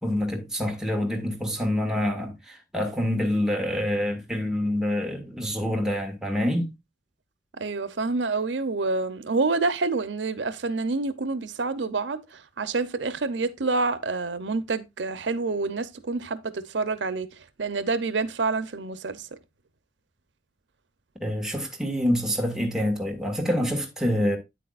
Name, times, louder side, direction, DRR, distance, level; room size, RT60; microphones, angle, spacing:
voice 1, 0.0-6.7 21.2-24.4, left 1 dB, 5° right, 1.9 m, -26 dB
voice 2, 7.5-17.3 17.6-19.3, right 3 dB, 90° right, 0.7 m, -27 dB
9.2 x 8.4 x 2.5 m
head